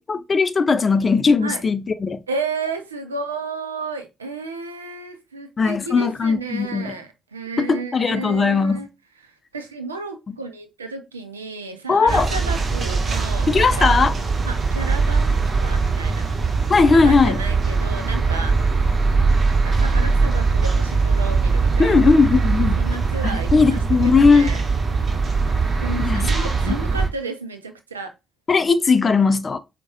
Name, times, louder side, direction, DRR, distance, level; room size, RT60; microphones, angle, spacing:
voice 1, 0.0-2.2 5.6-6.9 7.6-8.8 11.9-12.3 13.5-14.2 16.7-17.4 21.8-22.8 23.5-24.5 26.0-26.3 26.7-26.8 28.5-29.6, left 4 dB, 35° left, 0.4 m, -18 dB
voice 2, 2.3-8.9 9.2-14.0 14.5-15.4 15.6-16.3 16.8-18.7 19.6-22.1 22.8-24.6 25.8-28.1, right 3 dB, 85° right, 0.4 m, -32 dB
sound 1, 12.1-27.1, right 4 dB, 40° right, 0.7 m, -21 dB
4.5 x 2.2 x 2.7 m
figure-of-eight pair, 40°, 0 cm